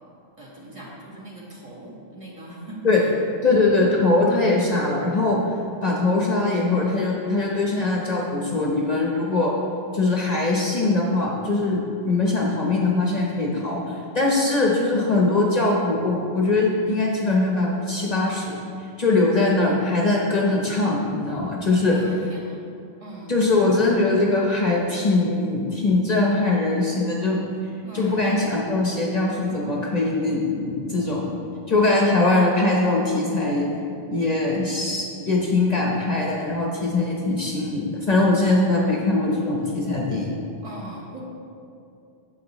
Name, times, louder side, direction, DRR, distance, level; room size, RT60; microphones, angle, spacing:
voice 1, 0.4-2.8 21.9-22.6 23.0-23.5 27.8-28.4 31.7-32.1 40.6-41.2, right 1 dB, 30° right, -6 dB, 1.6 m, -40 dB
voice 2, 3.4-5.4 5.8-9.5 9.9-18.6 19.0-22.0 23.3-27.4 27.9-31.3 31.7-33.7 34.1-40.3, left 2 dB, 45° left, -3 dB, 0.9 m, -21 dB
9.3 x 7.2 x 3.0 m, 2.5 s
omnidirectional pair, 1.1 m